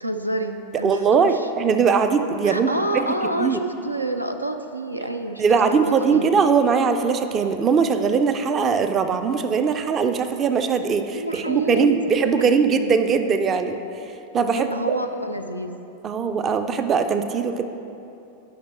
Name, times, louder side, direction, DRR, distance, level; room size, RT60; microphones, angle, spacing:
voice 1, 0.0-1.5 2.4-6.3 11.1-12.5 14.5-15.8, right 1 dB, 85° right, 6 dB, 0.4 m, -28 dB
voice 2, 0.8-3.1 3.4-3.6 5.4-13.7 14.3-14.7 16.0-17.6, right 5 dB, 25° right, 8 dB, 0.4 m, -20 dB
9.4 x 5.7 x 4.2 m, 2.8 s
figure-of-eight pair, 90°, 0 cm